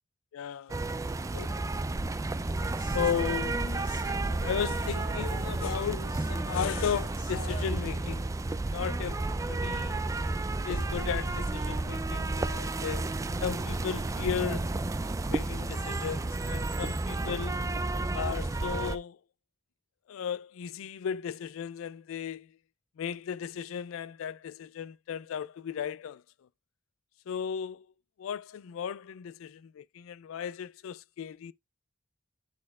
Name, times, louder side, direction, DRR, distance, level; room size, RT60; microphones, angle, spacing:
voice 1, 0.3-0.8 1.2-1.6 2.9-3.8 4.4-8.3 8.6-9.2 9.5-10.0 10.6-13.1 13.4-14.7 15.3-17.6 18.1-19.2 20.1-22.6 23.0-26.2 27.3-27.9 28.2-31.5, left 8 dB, 75° left, 0.3 m, -35 dB
sound 1, 0.7-19.0, right 2 dB, 15° right, 0.3 m, -32 dB
sound 2, 2.5-7.6, left 1 dB, 40° left, 1.8 m, -44 dB
10.5 x 4.2 x 2.3 m
head